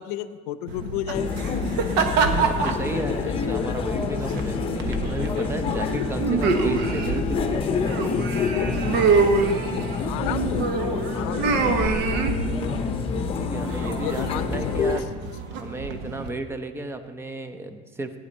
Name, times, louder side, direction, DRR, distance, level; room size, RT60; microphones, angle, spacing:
voice 1, 0.0-1.3 5.8-6.4 10.0-11.6 14.0-14.9, left 12 dB, 90° left, 14 dB, 0.6 m, -33 dB
sound 1, 0.7-16.3, right 4 dB, 65° right, 1.2 m, -27 dB
sound 2, 1.1-15.0, left 5 dB, 30° left, 0.9 m, -27 dB
voice 2, 2.3-7.9 13.4-15.1 15.5-18.2, right 2 dB, 15° right, 9 dB, 0.7 m, -34 dB
15.0 x 9.8 x 4.1 m, 1.5 s
cardioid pair, 140°, 19 cm